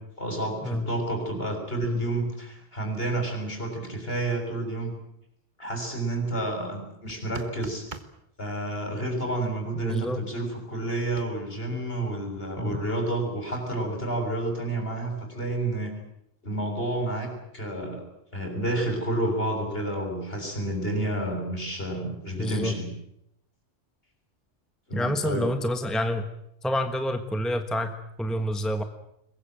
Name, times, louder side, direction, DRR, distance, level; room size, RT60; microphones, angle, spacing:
voice 1, 0.2-4.9 5.6-7.9 8.4-15.9 16.4-18.0 18.3-22.9 24.9-25.5, right 1 dB, 50° left, 3 dB, 7.0 m, -30 dB
sound 1, 7.1-8.2 11.2-11.3, right 3 dB, 40° right, 1.7 m, -41 dB
voice 2, 9.8-10.2 12.6-12.8 22.4-22.8 24.9-26.3 26.6-28.8, equal, ahead, 8 dB, 1.3 m, -28 dB
22.5 x 21.0 x 9.1 m, 0.78 s
omnidirectional pair, 1.3 m